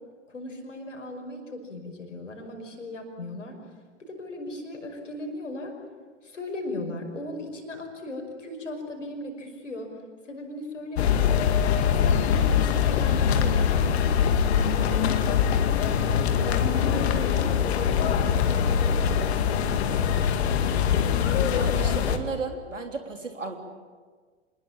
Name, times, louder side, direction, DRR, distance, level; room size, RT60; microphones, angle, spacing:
voice 1, 0.3-3.6 4.0-5.7 6.2-9.9 10.2-11.3 11.8-14.3 14.5-16.0 16.3-20.3, left 1 dB, 80° left, 3 dB, 5.6 m, -37 dB
sound 1, 11.0-22.2, left 8 dB, 60° left, 2.2 m, -23 dB
voice 2, 21.5-23.6, right 4 dB, 85° right, 4 dB, 3.4 m, -34 dB
26.5 x 21.0 x 8.8 m, 1.5 s
figure-of-eight pair, 95°, 37 cm